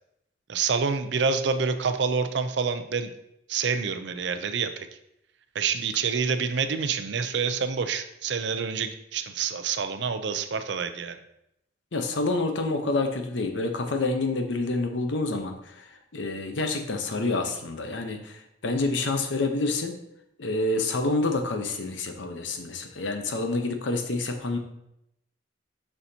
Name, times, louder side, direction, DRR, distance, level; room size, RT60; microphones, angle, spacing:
voice 1, 0.5-3.1 3.5-4.9 5.5-11.2, right 5 dB, 65° right, 9 dB, 0.5 m, -27 dB
voice 2, 11.9-15.9 16.1-19.9 20.4-24.6, left 2 dB, 75° left, 5 dB, 0.8 m, -28 dB
6.8 x 5.6 x 2.8 m, 0.80 s
head